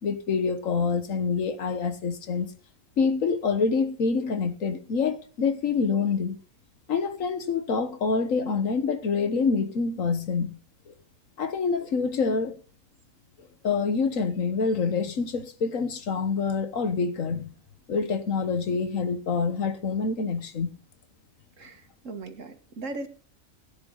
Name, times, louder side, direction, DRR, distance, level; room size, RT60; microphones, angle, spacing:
voice 1, 0.0-2.5 3.0-6.4 6.9-10.6 10.9-11.0 11.4-12.5 13.6-17.5 17.9-20.8, left 5 dB, 85° left, 1.7 m, -26 dB
voice 2, 21.6-23.1, right 2 dB, 75° right, 2.0 m, -38 dB
17.0 x 9.6 x 4.0 m
omnidirectional pair, 1.3 m